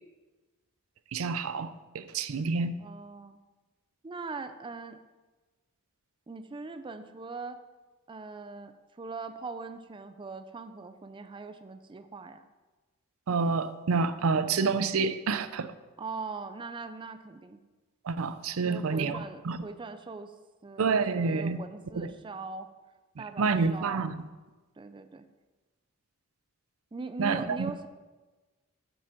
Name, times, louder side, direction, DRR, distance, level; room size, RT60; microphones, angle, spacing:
voice 1, 1.1-2.8 13.3-15.7 18.1-19.6 20.8-21.6 21.9-22.1 23.4-24.2 27.2-27.7, right 4 dB, 75° right, 13 dB, 0.5 m, -28 dB
voice 2, 2.8-3.4 4.0-5.0 6.3-7.6 8.1-12.4 16.0-17.6 18.6-20.3 20.6-22.7 23.2-24.1 24.8-25.2 26.9-27.9, right 4 dB, 25° right, 10 dB, 0.4 m, -41 dB
9.1 x 7.6 x 4.5 m, 1.2 s
head